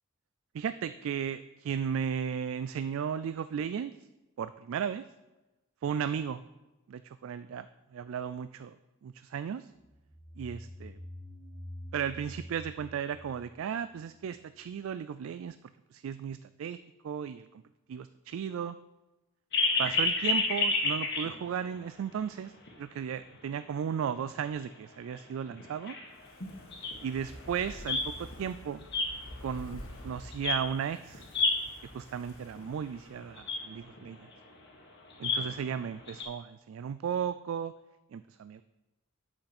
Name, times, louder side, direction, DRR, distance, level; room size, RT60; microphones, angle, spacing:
voice 1, 0.5-3.9 4.4-5.0 5.8-6.4 6.9-7.7 7.9-8.8 9.0-9.7 10.4-11.0 11.9-15.6 15.9-16.8 17.0-17.5 17.9-18.8 19.8-22.5 22.8-26.0 27.0-28.9 29.4-31.2 31.9-34.3 35.2-37.7 38.1-38.6, right 7 dB, 65° right, 13 dB, 0.3 m, -35 dB
sound 1, 9.8-14.4, equal, 5° right, 0.9 m, -47 dB
sound 2, 19.5-21.7 22.1-22.2 22.7-22.8 24.1-24.2 24.7-24.8 25.1-25.2 25.5-28.4 28.8-30.1 30.3-30.8 31.1-32.0 32.6-32.7 32.9-33.0 33.2-36.2, left 3 dB, 50° left, 1.6 m, -30 dB
Fire, 26.1-33.4 33.7-33.8, left 1 dB, 80° left, 1.9 m, -49 dB
8.7 x 7.9 x 4.3 m, 1.1 s
head